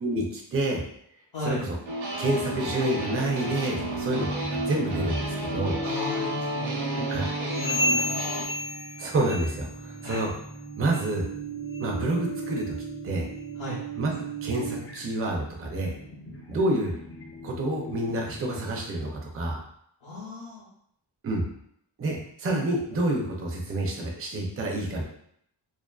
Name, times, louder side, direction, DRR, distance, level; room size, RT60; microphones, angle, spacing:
voice 1, 0.0-0.8 1.4-1.8 2.2-5.8 7.1-7.3 9.0-10.3 10.8-11.3 11.8-12.7 13.0-13.3 14.0-15.9 16.5-17.0 17.4-19.6 21.2-21.5 22.0-25.0, right 1 dB, 30° right, 0 dB, 0.4 m, -28 dB
voice 2, 1.3-1.6 5.8-7.1 7.4-8.2 8.6-8.7 10.0-10.2 13.6-13.8 20.0-20.7, left 1 dB, 60° left, -8 dB, 0.7 m, -36 dB
sound 1, 1.9-8.5, right 1 dB, 75° right, 0.7 m, -32 dB
sound 2, 4.1-19.2, right 2 dB, 30° left, 0.4 m, -37 dB
sound 3, 7.5-9.7 10.0-10.4 10.8-11.0 11.6-11.8 12.5-12.6 13.3-13.4, left 2 dB, 90° left, 0.9 m, -31 dB
2.4 x 2.4 x 2.2 m, 0.70 s
wide cardioid pair, 135°, 48 cm